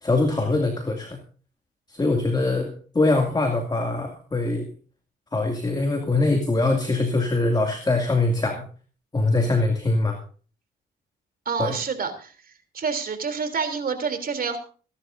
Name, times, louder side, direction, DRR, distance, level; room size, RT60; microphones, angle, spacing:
voice 1, 0.0-1.2 1.9-4.7 5.3-8.6 9.1-10.2 11.6-11.8, left 2 dB, 20° left, 2 dB, 2.4 m, -23 dB
voice 2, 11.4-12.3 12.7-14.6, right 5 dB, 50° right, 7 dB, 3.3 m, -27 dB
26.5 x 11.5 x 2.7 m, 0.40 s
cardioid pair, 90°, 20 cm